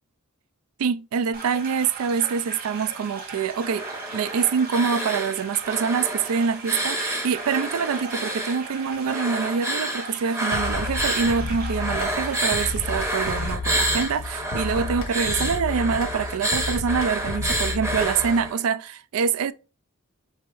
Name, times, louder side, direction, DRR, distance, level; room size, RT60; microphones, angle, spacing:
voice 1, 0.8-3.9 4.1-19.5, right 6 dB, 75° right, 0.3 m, -25 dB
sound 1, 1.3-13.5, right 4 dB, 45° right, 1.0 m, -38 dB
sound 2, 3.6-5.4 5.6-8.6 9.0-11.4 11.7-18.6, right 1 dB, 15° right, 0.7 m, -29 dB
sound 3, 10.5-18.5, left 3 dB, 75° left, 0.7 m, -32 dB
4.1 x 2.9 x 3.8 m
head